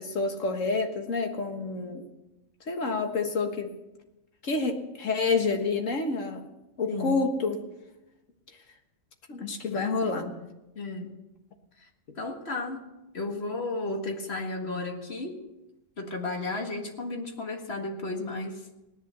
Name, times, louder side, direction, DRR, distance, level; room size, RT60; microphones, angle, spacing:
voice 1, 0.0-2.0 2.7-3.7 4.4-6.4 6.8-7.6 9.3-10.3, left 4 dB, 85° left, 4 dB, 1.9 m, -28 dB
voice 2, 6.9-7.2 9.7-10.1 10.8-11.1 12.2-12.9 13.1-15.4 16.0-18.6, left 2 dB, 55° left, 3 dB, 2.1 m, -33 dB
17.5 x 11.0 x 6.8 m, 0.97 s
omnidirectional pair, 1.3 m